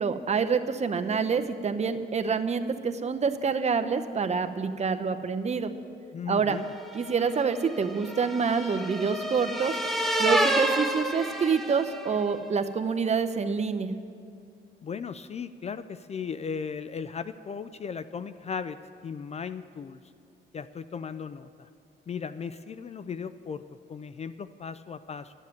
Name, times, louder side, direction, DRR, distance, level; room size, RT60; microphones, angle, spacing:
voice 1, 0.0-5.7 6.3-6.6 6.9-9.8 10.2-13.9, right 5 dB, 35° right, 8 dB, 0.8 m, -27 dB
voice 2, 6.1-6.7 14.8-18.8 19.0-20.0 20.5-21.7 22.1-23.6 23.9-25.3, left 6 dB, 35° left, 13 dB, 0.4 m, -36 dB
sound 1, 6.8-12.2, right 1 dB, ahead, 1.0 m, -29 dB
12.0 x 7.3 x 9.3 m, 2.3 s
cardioid pair, 90°, 20 cm